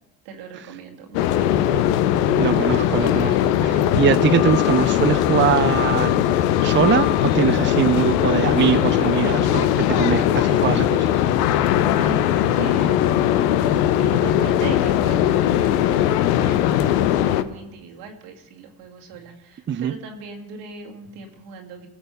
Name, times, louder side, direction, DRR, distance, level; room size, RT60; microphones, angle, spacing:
voice 1, 0.2-1.5 11.5-13.6 14.0-21.9, right 4 dB, 85° right, 1 dB, 2.1 m, -38 dB
sound 1, 1.1-17.4, left 11 dB, 90° left, 0.7 m, -19 dB
voice 2, 2.4-6.2 6.6-11.1 19.7-19.9, right 8 dB, 25° right, 14 dB, 0.5 m, -22 dB
17.5 x 6.1 x 6.9 m, 0.99 s
hypercardioid pair, 65°, 46 cm